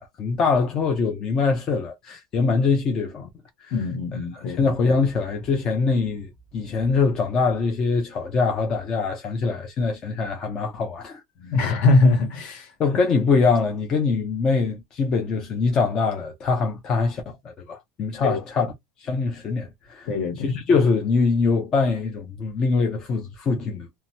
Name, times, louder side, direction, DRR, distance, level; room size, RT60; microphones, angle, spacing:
voice 1, 0.0-3.3 3.6-3.9 4.1-11.2 12.8-18.7 19.0-20.1 20.4-23.9, left 4 dB, 25° left, 0.5 m, -23 dB
voice 2, 3.7-4.7 11.4-12.7 18.2-18.4 20.1-20.5, left 3 dB, 45° left, 0.9 m, -22 dB
2.8 x 2.2 x 2.8 m
cardioid pair, 170°, 2 cm